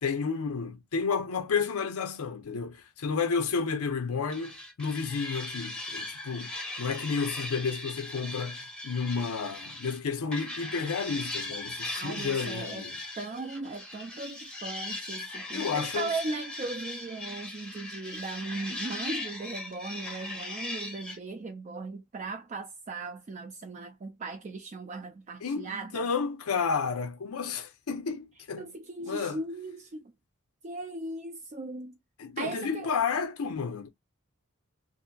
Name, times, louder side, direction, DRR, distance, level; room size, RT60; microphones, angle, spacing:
voice 1, 0.0-6.5 6.8-13.0 15.5-16.1 25.4-28.7 29.0-29.4 32.2-33.9, left 5 dB, 85° left, 0.6 m, -31 dB
sound 1, 4.3-10.0 10.3-21.2, left 2 dB, 5° left, 0.7 m, -39 dB
voice 2, 11.9-26.1 28.6-30.0 30.6-31.9 32.4-32.9, right 3 dB, 35° right, 0.3 m, -38 dB
2.7 x 2.5 x 2.2 m
head